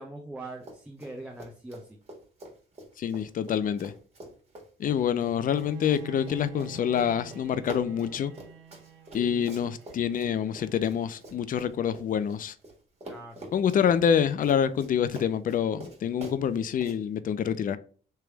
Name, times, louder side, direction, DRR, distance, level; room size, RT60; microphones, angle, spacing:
voice 1, 0.0-2.0 9.1-9.5 13.1-13.4, right 2 dB, 5° right, 0 dB, 0.8 m, -42 dB
Run, 0.6-1.1 1.4-12.7 13.0-17.0, right 1 dB, 30° right, 1.8 m, -45 dB
voice 2, 3.0-3.9 4.8-8.3 9.1-12.5 13.5-17.8, left 8 dB, 45° left, 13 dB, 0.4 m, -26 dB
Bowed string instrument, 5.4-11.5, right 6 dB, 80° right, 1.3 m, -48 dB
3.4 x 3.0 x 4.6 m, 0.41 s
cardioid pair, 90°, 20 cm